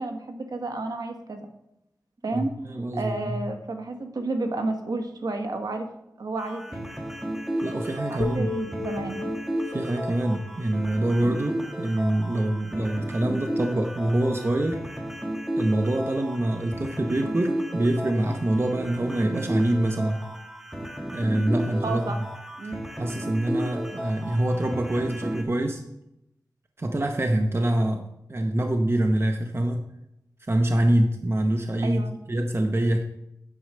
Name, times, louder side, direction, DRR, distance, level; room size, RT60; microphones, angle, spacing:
voice 1, 0.0-1.5 2.2-2.5 2.9-5.9 6.2-6.9 8.1-9.2 21.8-22.2 22.6-22.9 31.8-32.1, right 2 dB, 65° right, 5 dB, 1.3 m, -31 dB
voice 2, 2.3-3.4 7.6-8.5 9.6-14.8 15.6-20.2 21.1-22.2 23.0-25.8 26.8-29.8 30.5-32.0 32.3-33.0, right 1 dB, 35° right, 4 dB, 0.9 m, -25 dB
sound 1, 6.4-25.4, equal, 5° right, 1.7 m, -34 dB
sound 2, 8.2-12.3, left 4 dB, 85° left, 0.5 m, -38 dB
9.6 x 4.7 x 6.6 m, 0.84 s
wide cardioid pair, 75°, 7 cm